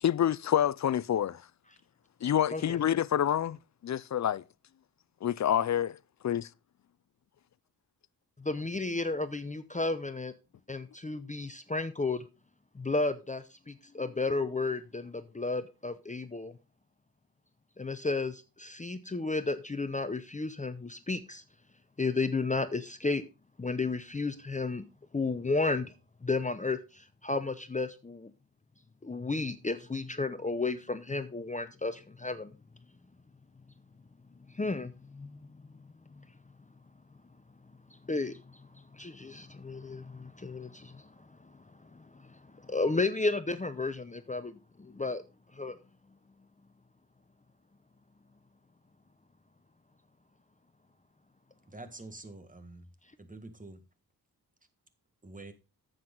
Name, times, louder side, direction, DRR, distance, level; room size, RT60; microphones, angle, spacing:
voice 1, 0.0-1.4 2.2-4.4 5.2-6.0 6.2-6.5, left 10 dB, 45° left, 0.5 m, -27 dB
voice 2, 8.4-10.3 10.7-12.2 12.7-16.5 17.8-21.4 22.0-23.2 23.6-24.8 25.1-25.9 26.2-28.3 29.0-32.5 34.5-36.2 38.1-38.6 38.9-41.2 41.4-45.2 45.5-45.8, left 3 dB, 20° left, 0.7 m, -33 dB
voice 3, 51.7-52.9 53.2-53.8 55.2-55.5, right 2 dB, 20° right, 1.7 m, -46 dB
9.3 x 7.9 x 3.9 m
cardioid pair, 70°, 39 cm